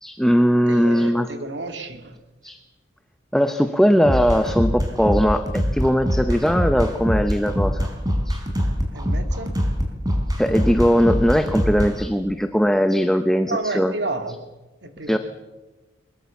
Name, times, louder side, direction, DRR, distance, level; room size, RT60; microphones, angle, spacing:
voice 1, 0.0-1.3 2.4-2.6 3.3-7.9 8.3-8.4 10.4-13.9 15.1-15.2, equal, 5° left, 7 dB, 0.8 m, -19 dB
voice 2, 0.7-2.2 8.9-9.6 13.4-14.4 14.8-15.2, right 2 dB, 65° right, 6 dB, 2.3 m, -31 dB
sound 1, 4.1-11.9, equal, 20° right, 4.1 m, -23 dB
22.5 x 22.0 x 7.2 m, 1.2 s
head